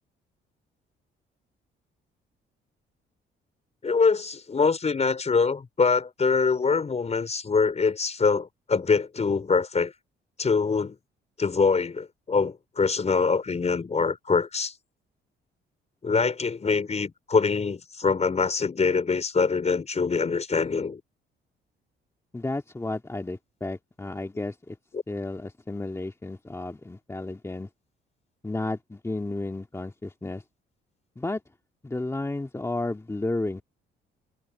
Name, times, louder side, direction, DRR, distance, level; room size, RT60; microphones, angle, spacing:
voice 1, 3.8-9.9 10.4-11.0 11.4-14.7 16.0-21.0 24.9-25.0, left 5 dB, 35° left, 4.9 m, -24 dB
voice 2, 22.3-24.8 25.1-27.7 28.4-30.4 31.2-31.4 31.8-33.6, left 2 dB, 15° left, 2.2 m, -32 dB
cardioid pair, 90°, 20 cm